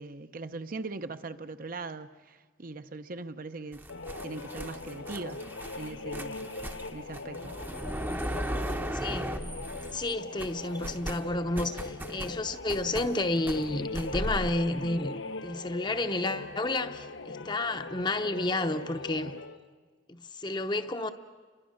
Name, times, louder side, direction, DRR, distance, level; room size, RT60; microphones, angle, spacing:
voice 1, 0.0-3.8 4.2-5.4 5.8-6.4 6.9-7.5, right 3 dB, 50° right, 0.7 m, -40 dB
sound 1, 3.7-10.1 10.4-14.5, right 1 dB, 10° right, 0.8 m, -37 dB
sound 2, 3.9-19.6, left 3 dB, 85° left, 1.0 m, -41 dB
voice 2, 8.9-9.3 9.9-19.3 20.1-21.1, left 2 dB, 25° left, 0.8 m, -31 dB
29.5 x 23.0 x 6.5 m
head